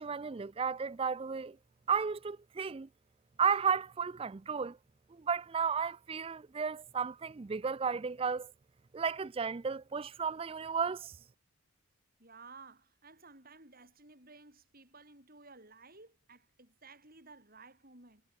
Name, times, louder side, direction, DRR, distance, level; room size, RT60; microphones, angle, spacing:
voice 1, 0.0-1.6 1.9-2.9 3.4-4.8 5.1-8.5 8.9-11.1, right 6 dB, 25° right, 0.4 m, -33 dB
voice 2, 12.2-18.2, right 3 dB, 40° right, 7.7 m, -55 dB
head